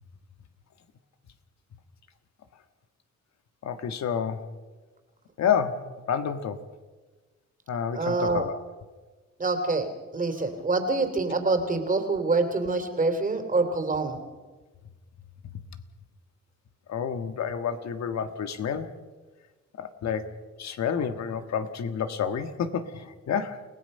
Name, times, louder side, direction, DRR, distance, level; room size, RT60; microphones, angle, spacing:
voice 1, 3.6-4.5 5.4-6.7 7.7-8.6 16.9-18.9 19.8-23.6, left 7 dB, 60° left, 9 dB, 1.7 m, -29 dB
voice 2, 7.9-8.5 9.4-14.2, right 3 dB, 25° right, 6 dB, 3.3 m, -26 dB
29.0 x 17.0 x 5.6 m, 1.3 s
cardioid pair, 90°, 30 cm